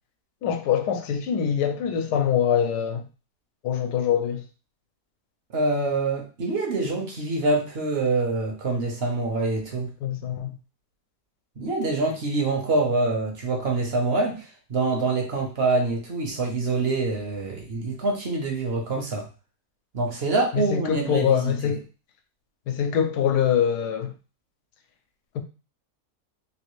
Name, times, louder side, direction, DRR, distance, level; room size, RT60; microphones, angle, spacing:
voice 1, 0.4-3.0 3.6-4.4 10.0-10.6 20.5-21.8 22.7-24.1 25.3-25.4, left 8 dB, 90° left, 1.2 m, -24 dB
voice 2, 5.5-9.9 11.6-19.3 19.9-21.8, right 3 dB, 50° right, 0.8 m, -25 dB
3.1 x 2.5 x 3.0 m
omnidirectional pair, 1.7 m